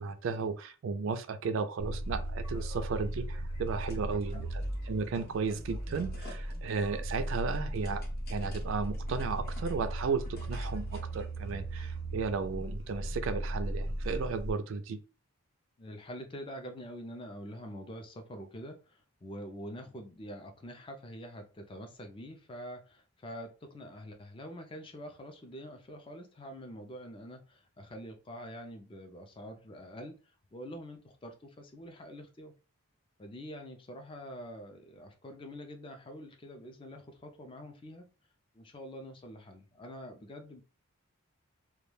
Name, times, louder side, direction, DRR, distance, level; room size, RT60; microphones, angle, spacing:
voice 1, 0.0-8.0 8.3-15.0, right 4 dB, 60° right, 0.3 m, -34 dB
sound 1, 1.8-14.5, right 1 dB, 85° left, 1.2 m, -37 dB
sound 2, 3.6-4.3 4.7-11.2, left 1 dB, 45° left, 0.7 m, -54 dB
voice 2, 15.8-32.5 33.2-38.1 38.5-40.6, equal, 25° left, 0.3 m, -46 dB
2.2 x 2.1 x 3.1 m
head